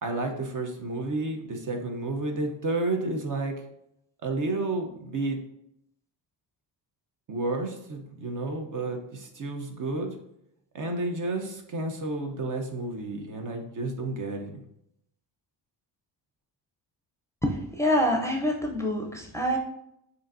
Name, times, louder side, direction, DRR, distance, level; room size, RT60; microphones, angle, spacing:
voice 1, 0.0-3.6 4.2-5.4 7.3-10.1 10.7-14.6, right 2 dB, 45° right, 3 dB, 0.9 m, -31 dB
voice 2, 17.4-19.6, equal, 5° left, 0 dB, 0.6 m, -26 dB
6.8 x 2.7 x 2.6 m, 0.78 s
cardioid pair, 90°, 44 cm